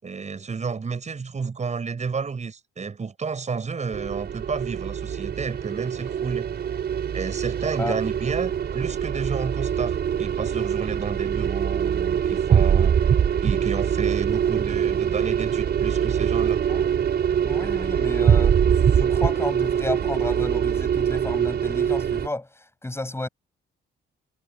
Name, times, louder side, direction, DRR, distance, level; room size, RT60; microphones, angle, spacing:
voice 1, 0.0-6.5 7.1-13.0 13.4-16.6, right 5 dB, 35° right, 6.0 m, -31 dB
sound 1, 3.9-22.3, right 8 dB, 55° right, 4.4 m, -23 dB
voice 2, 17.4-23.3, left 2 dB, 10° left, 5.9 m, -32 dB
cardioid pair, 90°, 20 cm